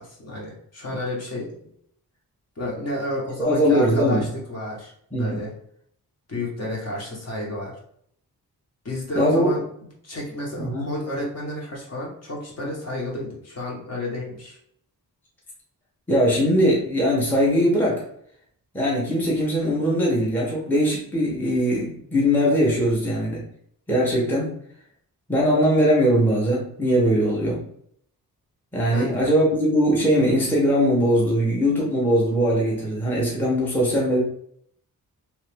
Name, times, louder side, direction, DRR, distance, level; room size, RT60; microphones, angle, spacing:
voice 1, 0.0-1.5 2.6-4.9 5.2-5.5 6.3-7.7 8.8-9.6 10.0-14.6 28.9-29.4, left 1 dB, 45° left, -3 dB, 1.0 m, -31 dB
voice 2, 3.4-4.3 5.1-5.4 9.2-9.5 10.6-10.8 16.1-18.0 18.7-23.4 23.9-24.5 25.3-27.6 28.7-34.2, equal, 5° left, -5 dB, 0.8 m, -21 dB
2.9 x 2.5 x 3.3 m, 0.67 s
wide cardioid pair, 160°, 37 cm